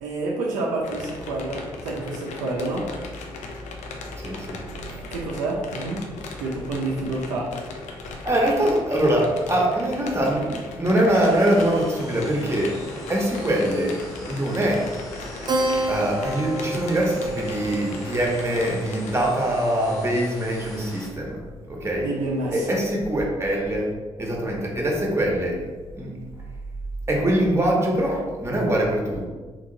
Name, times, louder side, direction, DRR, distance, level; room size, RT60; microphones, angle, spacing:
voice 1, 0.0-2.9 5.1-6.1 6.4-7.5 22.0-22.8, right 2 dB, 80° right, -3 dB, 0.5 m, -28 dB
sound 1, 0.8-19.2, left 3 dB, 70° left, 0.5 m, -38 dB
voice 2, 4.2-4.6 4.9-5.0 8.2-12.8 13.1-14.9 15.9-21.4 21.7-22.1 22.5-23.9 24.2-25.6 25.9-26.1 27.1-29.3, right 1 dB, 20° right, -1 dB, 1.1 m, -23 dB
sound 2, 11.1-21.1, equal, 90° left, 1.3 m, -41 dB
Keyboard (musical), 15.5-20.4, right 1 dB, 35° right, 0.6 m, -30 dB
2.9 x 2.8 x 3.9 m, 1.3 s
hypercardioid pair, 40°, 13 cm